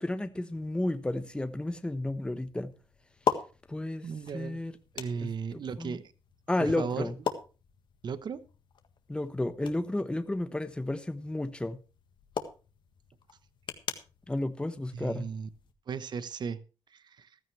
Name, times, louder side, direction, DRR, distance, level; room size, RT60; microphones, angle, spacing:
voice 1, 0.0-2.7 3.7-4.1 4.3-4.8 5.2-6.0 6.5-7.1 9.1-11.8 14.3-15.3, left 1 dB, 10° left, 1.0 m, -32 dB
sound 1, 0.5-15.7, left 7 dB, 60° left, 1.6 m, -41 dB
voice 2, 4.0-4.6 4.9-6.1 6.6-7.1 8.0-8.4 14.9-15.5 15.9-16.6 16.9-17.3, right 6 dB, 55° right, 1.0 m, -36 dB
15.0 x 13.0 x 3.3 m
cardioid pair, 80°, 9 cm